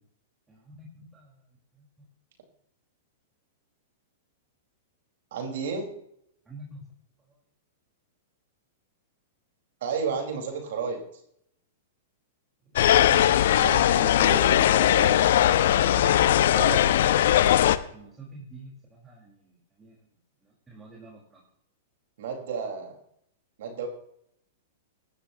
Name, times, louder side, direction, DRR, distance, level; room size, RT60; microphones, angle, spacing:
voice 1, 0.5-0.9 1.1-1.3 6.5-6.8 12.7-13.3 15.8-16.8 17.7-19.9 20.4-21.4, right 2 dB, 15° right, -5 dB, 4.7 m, -47 dB
voice 2, 5.3-5.9 9.8-11.0 13.5-15.2 16.5-16.8 22.2-23.0 23.6-23.9, right 5 dB, 70° right, 1 dB, 4.8 m, -32 dB
sound 1, 12.8-17.8, left 11 dB, 70° left, 0.8 m, -20 dB
17.0 x 12.5 x 3.0 m, 0.70 s
hypercardioid pair, 130°, 0 cm